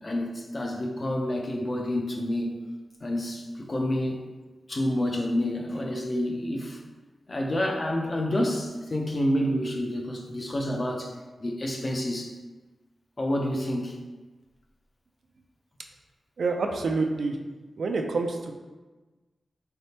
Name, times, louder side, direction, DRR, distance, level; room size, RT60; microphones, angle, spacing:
voice 1, 0.0-2.6 3.0-4.2 4.7-6.8 7.3-11.1 11.4-12.3 13.2-14.0, left 1 dB, 30° left, 1 dB, 0.5 m, -28 dB
voice 2, 16.4-17.4 17.8-18.5, right 3 dB, 65° right, 3 dB, 0.4 m, -27 dB
4.1 x 3.3 x 2.8 m, 1.2 s
wide cardioid pair, 145°, 0 cm